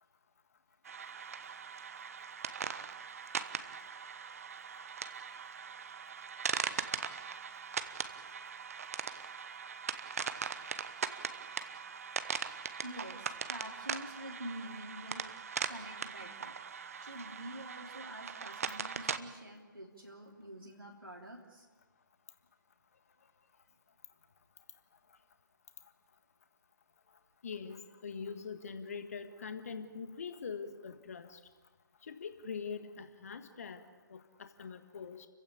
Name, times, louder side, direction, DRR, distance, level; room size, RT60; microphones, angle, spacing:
sound 1, 0.9-19.2, right 6 dB, 45° right, 1.0 m, -40 dB
voice 1, 12.8-15.2 15.7-16.6 17.0-21.7, equal, 90° right, -2 dB, 3.3 m, -47 dB
voice 2, 27.4-31.4 32.0-35.3, left 5 dB, 45° left, 9 dB, 1.6 m, -43 dB
29.5 x 16.0 x 8.7 m, 1.3 s
figure-of-eight pair, 140°, 11 cm